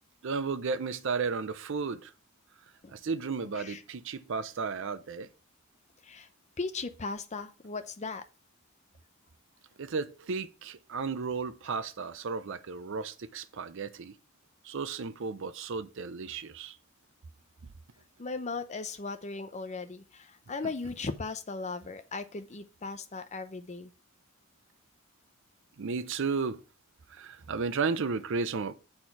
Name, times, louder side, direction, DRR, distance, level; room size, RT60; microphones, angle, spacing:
voice 1, 0.2-2.1 2.9-5.3 9.8-14.2 14.6-16.8 25.8-26.6 27.1-28.7, right 4 dB, 60° right, 0.5 m, -33 dB
voice 2, 6.6-8.2 18.2-23.9, left 3 dB, 30° left, 0.6 m, -37 dB
7.8 x 4.3 x 4.5 m
head